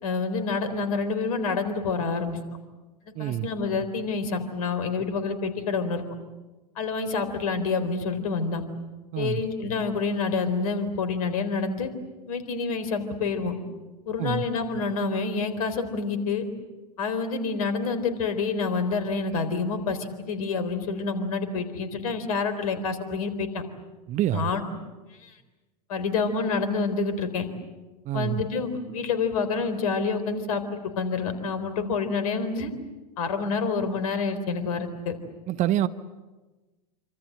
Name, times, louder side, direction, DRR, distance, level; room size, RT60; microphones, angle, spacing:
voice 1, 0.0-2.4 3.2-6.0 6.8-8.6 9.2-11.9 12.3-13.6 14.1-16.4 17.0-23.6 24.3-24.6 25.2-25.4 25.9-27.5 28.1-32.7 33.2-35.1, left 4 dB, 60° left, 3.9 m, -28 dB
voice 2, 3.1-3.5 9.1-9.4 14.2-14.4 24.1-24.5 28.0-28.4 35.5-35.9, right 13 dB, 35° right, 1.1 m, -26 dB
27.5 x 25.5 x 7.8 m
figure-of-eight pair, 90°, 21 cm